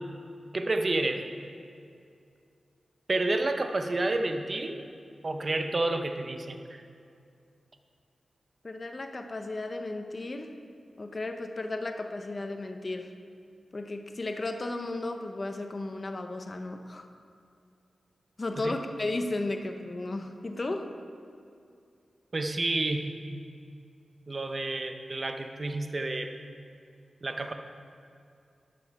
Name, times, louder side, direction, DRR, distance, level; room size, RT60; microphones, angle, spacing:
voice 1, 0.5-1.3 3.1-4.8 5.2-6.6 18.6-18.8 22.3-23.4 24.3-26.3 27.2-27.5, right 2 dB, 35° right, 6 dB, 0.6 m, -30 dB
voice 2, 8.6-10.5 11.0-13.1 13.7-17.1 18.4-20.9, left 2 dB, 35° left, 6 dB, 0.5 m, -34 dB
12.0 x 5.4 x 4.6 m, 2.4 s
wide cardioid pair, 110°, 0 cm